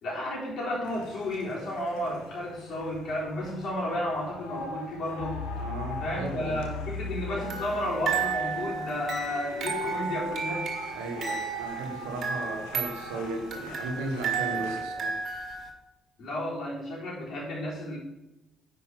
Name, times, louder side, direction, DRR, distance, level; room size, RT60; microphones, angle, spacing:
voice 1, 0.0-5.4 6.0-10.7 16.2-18.0, left 1 dB, 45° left, -5 dB, 3.8 m, -32 dB
sound 1, 0.8-14.8, left 3 dB, 70° left, 1.1 m, -41 dB
voice 2, 5.6-6.6 10.9-15.2, right 2 dB, 65° right, 3 dB, 1.2 m, -35 dB
sound 2, 7.4-15.7, right 5 dB, 45° right, 1.6 m, -33 dB
10.5 x 4.8 x 5.8 m, 0.96 s
figure-of-eight pair, 50°, 0 cm